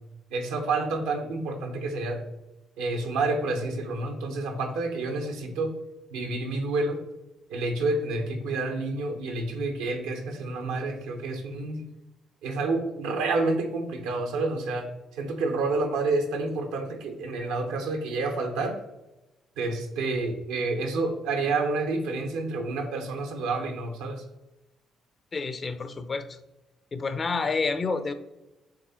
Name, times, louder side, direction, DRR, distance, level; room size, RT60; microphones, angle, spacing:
voice 1, 0.3-2.2 2.8-5.7 6.1-7.0 7.5-11.8 12.4-14.9 15.2-18.8 19.6-24.2, right 3 dB, 85° right, 4 dB, 1.2 m, -29 dB
voice 2, 25.3-26.4 26.9-28.1, left 4 dB, 40° left, 11 dB, 0.7 m, -29 dB
7.8 x 3.3 x 4.4 m, 0.97 s
hypercardioid pair, 55°, 0 cm